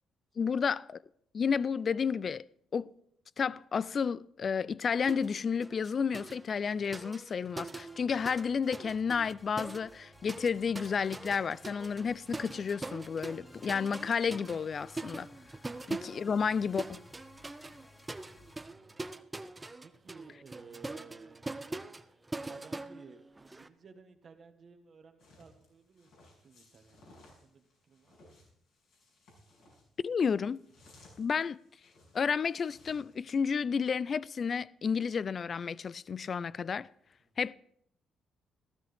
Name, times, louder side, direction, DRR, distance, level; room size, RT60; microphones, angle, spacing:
voice 1, 0.4-1.0 1.3-2.4 2.7-2.9 3.4-15.3 15.9-17.0 30.0-30.6 31.2-31.6 32.1-36.9 37.4-37.5, left 6 dB, 45° left, 0.4 m, -31 dB
sound 1, 5.1-5.3 5.6-8.5 8.7-23.7, right 2 dB, 15° right, 0.7 m, -43 dB
sound 2, 7.9-18.6, left 2 dB, 15° left, 1.3 m, -59 dB
voice 2, 16.1-16.5 18.6-19.0 19.8-21.5 22.4-26.1 26.4-28.4 37.2-37.3, right 5 dB, 50° right, 1.6 m, -56 dB
sound 3, 25.2-33.3, left 2 dB, 75° left, 6.5 m, -61 dB
15.0 x 12.5 x 3.5 m
cardioid pair, 90°, 0 cm